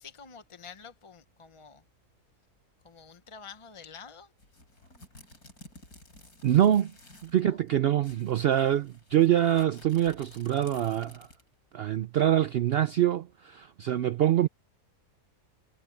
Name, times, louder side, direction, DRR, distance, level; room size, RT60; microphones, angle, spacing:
voice 1, 0.0-1.8 2.8-4.3 7.5-7.6, left 6 dB, 30° left, 0.6 m, -48 dB
sound 1, 4.4-7.4 7.7-7.8 8.0-11.5, left 2 dB, 85° left, 6.4 m, -53 dB
voice 2, 6.4-6.9 7.2-11.3 11.7-14.5, right 11 dB, 85° right, 0.5 m, -25 dB
omnidirectional pair, 1.6 m